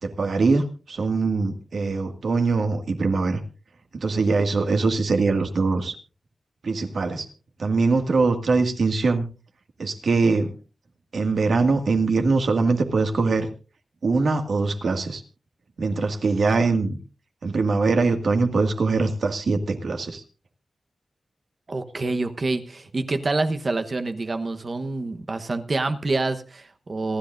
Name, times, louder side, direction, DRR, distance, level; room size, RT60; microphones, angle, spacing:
voice 1, 0.0-3.4 3.9-6.0 6.6-7.3 7.6-9.3 9.8-10.5 11.1-13.5 14.0-15.2 15.8-17.0 17.4-20.2, right 3 dB, 65° right, 5 dB, 2.0 m, -22 dB
voice 2, 21.7-27.2, right 3 dB, 40° right, 8 dB, 1.0 m, -27 dB
27.0 x 11.0 x 2.5 m, 0.34 s
wide cardioid pair, 130°, 0 cm